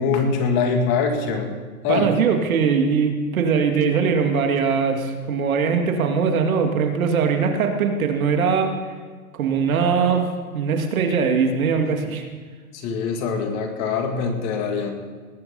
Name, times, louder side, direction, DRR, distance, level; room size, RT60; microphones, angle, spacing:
voice 1, 0.0-1.5 1.8-2.1 12.7-14.9, left 5 dB, 35° left, 4 dB, 2.3 m, -23 dB
voice 2, 1.9-8.7 9.3-12.3, right 6 dB, 65° right, 4 dB, 2.2 m, -21 dB
19.5 x 9.6 x 5.5 m, 1.5 s
hypercardioid pair, 130°, 45 cm